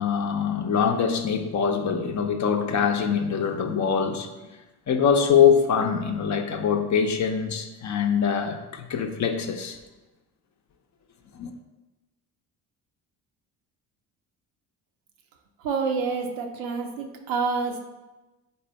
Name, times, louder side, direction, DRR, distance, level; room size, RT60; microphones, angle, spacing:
voice 1, 0.0-4.3 4.9-9.8 11.4-11.5, left 7 dB, 40° left, 5 dB, 0.6 m, -23 dB
voice 2, 15.6-17.8, right 4 dB, 80° right, 3 dB, 0.7 m, -28 dB
4.0 x 3.3 x 4.0 m, 1.1 s
hypercardioid pair, 55°, 46 cm